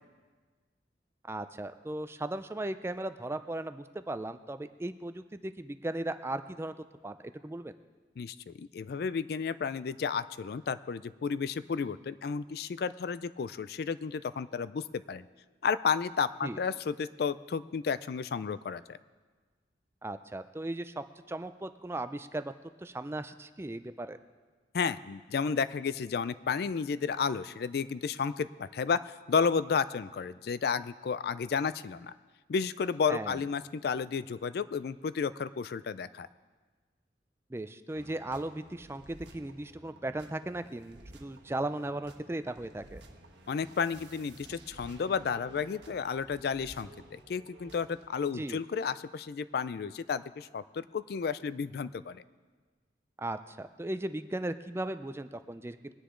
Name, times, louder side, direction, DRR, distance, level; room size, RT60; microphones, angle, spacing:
voice 1, 1.2-6.7 7.0-7.7 16.4-16.6 20.0-22.5 22.8-24.2 33.1-33.4 37.5-43.0 48.3-48.6 53.2-55.8, right 1 dB, 15° right, 11 dB, 0.4 m, -37 dB
voice 2, 8.2-15.2 15.6-19.0 24.7-32.1 32.5-36.3 43.5-52.2, left 6 dB, 60° left, 15 dB, 0.4 m, -32 dB
sound 1, 37.9-48.1, right 1 dB, 80° right, 1.3 m, -53 dB
21.0 x 9.9 x 3.8 m, 1.4 s
head